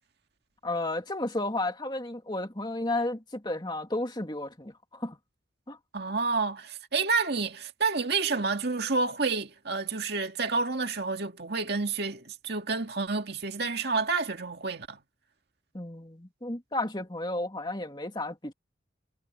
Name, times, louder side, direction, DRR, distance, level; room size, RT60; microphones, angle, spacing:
voice 1, 0.6-5.2 5.7-5.8 15.7-18.5, left 2 dB, 20° left, 2.7 m, -32 dB
voice 2, 5.9-15.0, right 4 dB, 55° right, 2.2 m, -29 dB
head